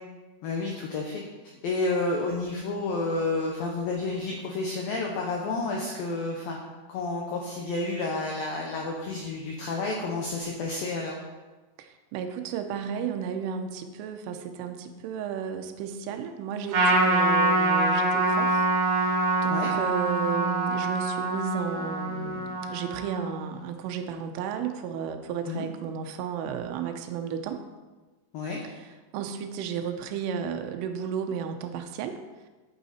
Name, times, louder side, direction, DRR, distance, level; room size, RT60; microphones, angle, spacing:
voice 1, 0.4-1.2 1.6-6.6 6.9-11.2 19.5-19.7 25.5-25.7 28.3-28.6, left 3 dB, 90° left, 0 dB, 2.0 m, -30 dB
voice 2, 11.8-27.6 29.1-32.2, right 7 dB, 85° right, 6 dB, 3.4 m, -33 dB
Trumpet, 16.7-23.4, right 2 dB, 55° right, 4.0 m, -25 dB
11.5 x 8.6 x 4.3 m, 1.2 s
omnidirectional pair, 5.7 m